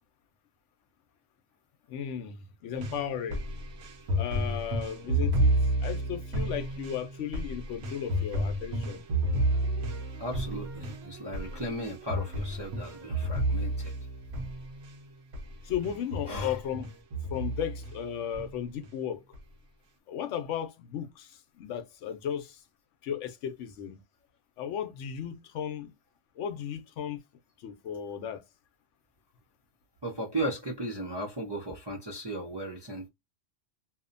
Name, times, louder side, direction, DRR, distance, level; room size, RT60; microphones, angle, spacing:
voice 1, 1.9-3.4 4.1-9.0 15.6-16.9 17.3-19.2 20.1-22.6 23.0-24.0 24.6-25.9 26.4-27.2 27.6-28.5, left 9 dB, 80° left, 0.9 m, -35 dB
sound 1, 2.8-15.0 15.3-15.5 15.8-18.0 18.3-18.9 19.3-19.4, right 1 dB, 85° right, 1.0 m, -31 dB
voice 2, 10.2-13.9 16.3-16.6 30.0-33.1, right 1 dB, 35° right, 0.4 m, -36 dB
2.7 x 2.1 x 2.4 m
omnidirectional pair, 1.2 m